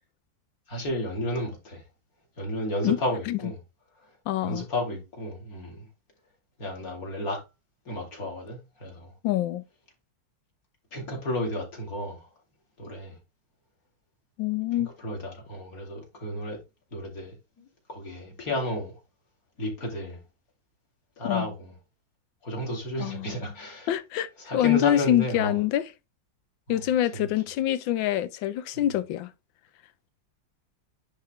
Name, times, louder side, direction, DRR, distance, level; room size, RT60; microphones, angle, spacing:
voice 1, 0.7-1.8 2.4-3.6 4.4-5.8 6.6-7.4 7.9-9.1 10.9-12.3 12.8-13.2 14.7-16.6 16.9-18.9 19.6-20.2 21.2-21.7 22.4-23.9 24.4-25.5 27.1-27.3 28.7-28.8, left 1 dB, 50° left, 3.2 m, -32 dB
voice 2, 4.3-4.6 9.2-9.6 14.4-14.9 21.2-21.5 23.0-23.4 23.9-24.3 24.5-25.8 26.7-29.3, left 12 dB, 90° left, 1.4 m, -25 dB
10.0 x 3.6 x 3.2 m
omnidirectional pair, 2.0 m